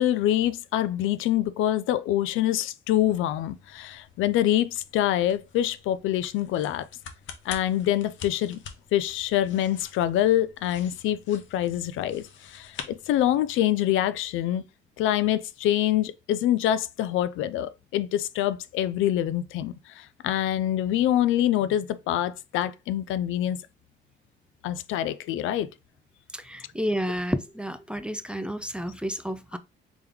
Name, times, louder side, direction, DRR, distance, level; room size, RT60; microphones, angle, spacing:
voice 1, 0.0-6.8 7.5-8.6 8.9-14.6 15.0-23.6 24.6-25.7, left 12 dB, 85° left, 0.4 m, -25 dB
sound 1, 3.0-13.7, left 7 dB, 70° left, 0.8 m, -47 dB
voice 2, 26.3-29.6, equal, 5° right, 0.4 m, -30 dB
3.6 x 3.0 x 3.4 m
cardioid pair, 90°, 20 cm